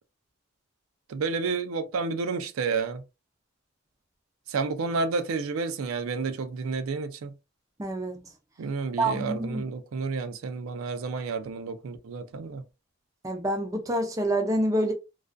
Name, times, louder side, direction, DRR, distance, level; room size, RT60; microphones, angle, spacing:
voice 1, 1.1-3.0 4.5-7.3 8.6-12.6, right 4 dB, 85° right, 0.4 m, -30 dB
voice 2, 7.8-8.2 9.0-9.6 13.2-14.9, right 1 dB, 15° right, 0.4 m, -27 dB
2.4 x 2.3 x 2.2 m
head